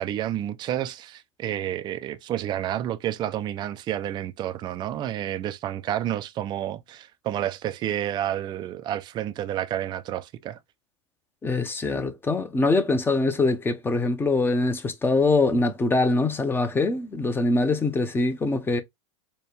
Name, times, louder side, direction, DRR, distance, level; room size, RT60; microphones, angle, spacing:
voice 1, 0.0-10.6, right 11 dB, 30° right, 0.4 m, -30 dB
voice 2, 11.4-18.8, left 3 dB, 15° left, 0.8 m, -23 dB
4.2 x 2.2 x 3.3 m
hypercardioid pair, 115°, 16 cm